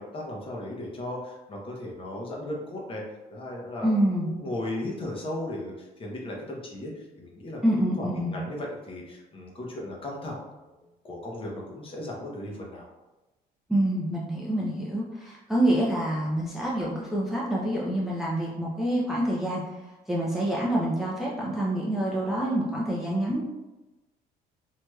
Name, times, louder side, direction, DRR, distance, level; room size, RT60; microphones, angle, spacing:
voice 1, 0.0-3.0 3.3-7.6 8.0-10.4 10.7-12.9, left 1 dB, 30° left, -2 dB, 0.8 m, -36 dB
voice 2, 3.8-4.3 7.6-8.4 13.7-19.6 20.1-23.4, right 1 dB, ahead, -5 dB, 0.5 m, -26 dB
3.1 x 2.7 x 2.2 m, 1.1 s
cardioid pair, 110°, 17 cm